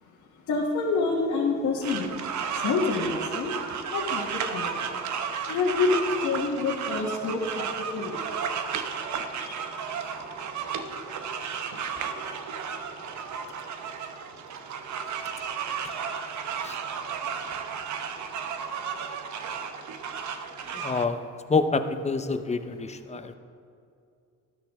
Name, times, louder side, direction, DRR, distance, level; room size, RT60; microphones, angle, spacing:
voice 1, 0.5-2.1 2.6-3.5 3.9-4.9 5.5-7.6 7.9-8.2 9.4-9.5, left 4 dB, 75° left, -4 dB, 1.5 m, -27 dB
sound 1, 1.8-21.0, right 6 dB, 70° right, 0.9 m, -33 dB
voice 2, 20.7-21.2 21.5-23.3, left 4 dB, 20° left, 9 dB, 0.7 m, -27 dB
13.0 x 12.0 x 3.6 m, 2.4 s
cardioid pair, 90°, 30 cm